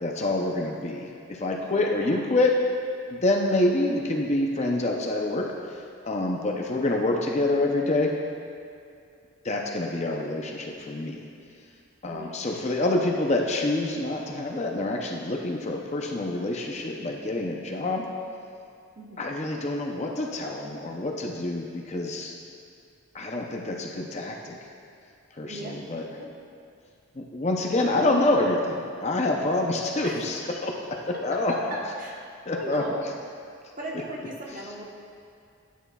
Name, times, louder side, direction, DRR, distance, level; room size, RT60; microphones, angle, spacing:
voice 1, 0.0-2.6 3.1-8.2 9.4-11.3 12.0-18.1 19.2-22.3 23.1-24.6 25.3-26.0 27.1-31.5 32.5-32.8, left 2 dB, 30° left, 0 dB, 0.5 m, -27 dB
voice 2, 1.9-2.3 12.1-12.5 19.0-19.3 25.5-25.8 26.2-26.3 27.7-28.3 30.0-30.4 31.1-33.1 33.8-34.8, equal, 35° right, -3 dB, 1.1 m, -37 dB
12.5 x 9.2 x 2.3 m, 2.5 s
head